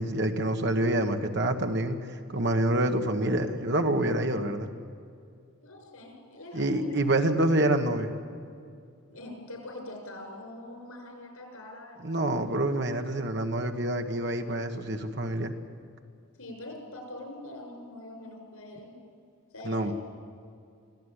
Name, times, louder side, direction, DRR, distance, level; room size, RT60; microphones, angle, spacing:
voice 1, 0.0-4.7 6.5-8.1 12.0-15.5 19.6-19.9, right 1 dB, 50° right, 5 dB, 1.6 m, -27 dB
voice 2, 5.6-6.9 9.1-12.3 16.4-18.9 19.5-19.9, left 1 dB, 90° left, 3 dB, 6.6 m, -43 dB
24.5 x 16.0 x 10.0 m, 2.4 s
head